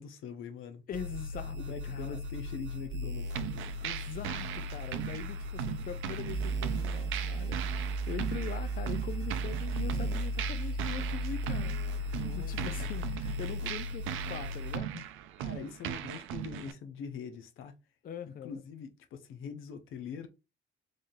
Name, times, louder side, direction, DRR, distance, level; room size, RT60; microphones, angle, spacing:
voice 1, 0.0-0.8 1.5-3.8 12.1-12.5 13.6-13.7 15.4-17.7 18.3-20.3, left 6 dB, 85° left, 0.7 m, -43 dB
voice 2, 0.9-1.6 1.9-2.2 3.8-15.0 18.0-18.6, left 8 dB, 45° left, 0.4 m, -42 dB
sound 1, 0.9-14.8, right 1 dB, 65° right, 0.8 m, -36 dB
sound 2, 3.3-16.7, right 11 dB, 90° right, 0.5 m, -39 dB
3.3 x 2.7 x 3.7 m
cardioid pair, 90°, 20 cm